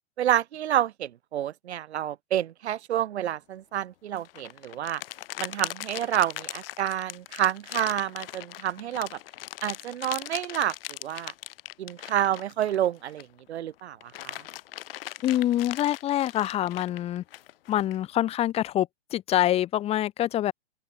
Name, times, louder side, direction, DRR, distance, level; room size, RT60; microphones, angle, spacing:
voice 1, 0.2-5.0 5.4-9.2 9.6-11.3 11.8-14.4, right 11 dB, 70° right, 1.5 m, -29 dB
sound 1, 4.1-13.4 13.8-18.0, left 14 dB, 55° left, 2.0 m, -40 dB
voice 2, 15.2-17.2 17.7-20.5, left 12 dB, 20° left, 0.9 m, -25 dB
open air
hypercardioid pair, 140°, 34 cm